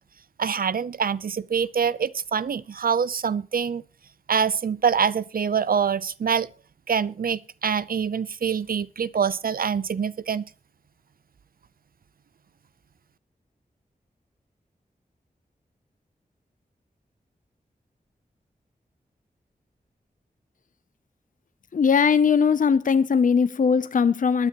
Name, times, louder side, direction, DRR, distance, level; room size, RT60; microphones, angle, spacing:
voice 1, 0.4-3.8 4.3-6.5 6.9-10.4, right 7 dB, 70° right, 0.6 m, -25 dB
voice 2, 21.7-24.5, left 6 dB, 60° left, 0.6 m, -20 dB
22.5 x 9.8 x 3.0 m
wide cardioid pair, 90°, 16 cm